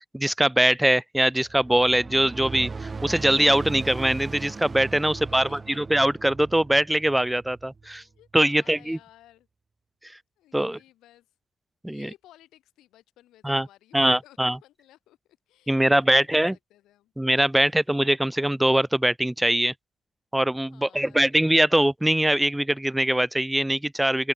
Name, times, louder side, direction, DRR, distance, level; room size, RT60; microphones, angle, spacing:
voice 1, 0.1-5.5 5.8-8.0 8.3-9.0 10.5-10.8 11.8-12.1 13.4-13.7 13.9-14.6 15.7-16.5 17.2-19.7 20.3-24.3, right 1 dB, 5° right, 1.0 m, -22 dB
sound 1, 1.4-8.0, right 4 dB, 30° right, 5.6 m, -38 dB
voice 2, 5.1-5.8 7.8-9.5 10.4-11.3 11.8-15.2 15.5-17.1 17.5-17.8 20.6-21.3, left 14 dB, 85° left, 7.3 m, -56 dB
open air
cardioid pair, 90°, 0 cm